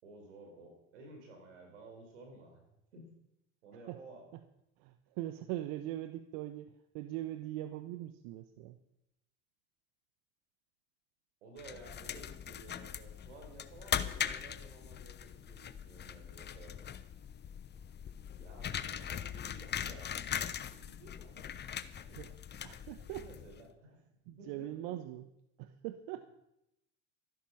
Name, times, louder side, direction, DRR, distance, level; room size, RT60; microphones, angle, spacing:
voice 1, 0.0-3.1 3.6-4.3 11.4-16.9 18.3-20.2 20.6-22.2 22.9-25.0, right 2 dB, 90° right, 3 dB, 4.9 m, -54 dB
voice 2, 4.8-8.8 22.2-22.4 22.6-23.3 24.3-25.3 25.6-26.2, right 14 dB, 65° right, 11 dB, 1.0 m, -41 dB
sound 1, 11.6-23.6, left 9 dB, 30° left, 0.9 m, -41 dB
13.5 x 12.0 x 5.8 m, 0.84 s
supercardioid pair, 95°, 36 cm